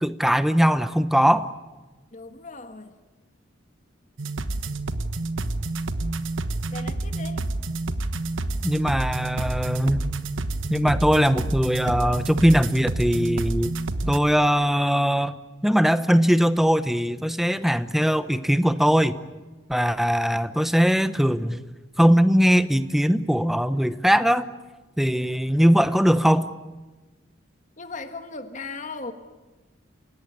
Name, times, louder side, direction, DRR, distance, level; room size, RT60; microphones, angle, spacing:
voice 1, 0.0-1.5 8.6-10.0 10.7-13.7 14.1-15.4 15.6-19.2 19.7-21.6 22.0-24.5 25.0-26.5, equal, ahead, 12 dB, 0.8 m, -20 dB
voice 2, 2.1-2.9 6.7-7.4 27.8-29.1, left 3 dB, 40° left, 7 dB, 1.7 m, -37 dB
sound 1, 4.2-14.2, right 2 dB, 85° right, 1.2 m, -29 dB
29.0 x 18.0 x 9.6 m, 1.2 s
head